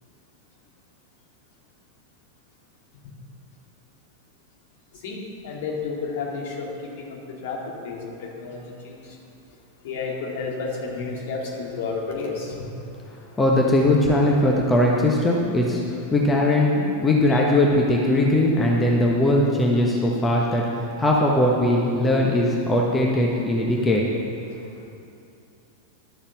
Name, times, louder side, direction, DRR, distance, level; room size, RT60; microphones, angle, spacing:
voice 1, 5.4-6.7 7.4-7.6 7.8-8.0 8.4-8.6 9.8-12.5, left 4 dB, 55° left, -2 dB, 2.3 m, -30 dB
voice 2, 13.4-20.6 21.0-24.0, left 1 dB, 15° left, -2 dB, 1.3 m, -20 dB
11.5 x 7.2 x 7.2 m, 2.7 s
figure-of-eight pair, 90°, 0 cm